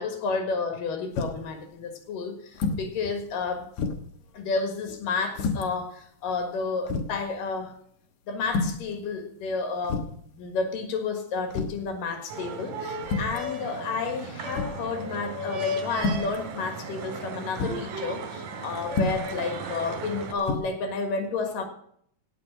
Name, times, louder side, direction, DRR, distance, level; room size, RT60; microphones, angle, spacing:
voice 1, 0.0-3.7 4.3-7.7 8.3-10.1 10.3-21.7, left 4 dB, 80° left, 5 dB, 3.4 m, -31 dB
sound 1, 1.2-1.5 2.5-2.9 3.3-3.4 3.8-4.2 5.4-5.7 6.4-6.5 6.9-7.2 8.5-8.9 9.8-10.2 11.5-11.9 13.0-13.4 14.5-14.9 15.9-16.4 17.6-17.8 18.9-19.3 20.4-20.6, left 4 dB, 65° left, 2.5 m, -29 dB
sound 2, 12.3-20.3, right 1 dB, 75° right, 3.4 m, -35 dB
17.5 x 6.0 x 6.3 m, 0.65 s
omnidirectional pair, 3.8 m